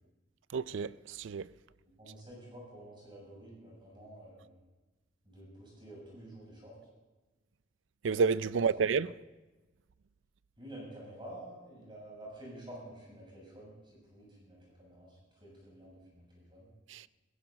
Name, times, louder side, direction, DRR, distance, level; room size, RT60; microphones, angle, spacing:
voice 1, 0.5-1.5 8.0-9.1 16.9-17.1, right 5 dB, 85° right, 0.4 m, -30 dB
voice 2, 2.0-4.6 5.2-6.8 8.7-8.9 10.6-16.7, right 1 dB, 25° right, 7.6 m, -50 dB
21.5 x 15.5 x 4.1 m
head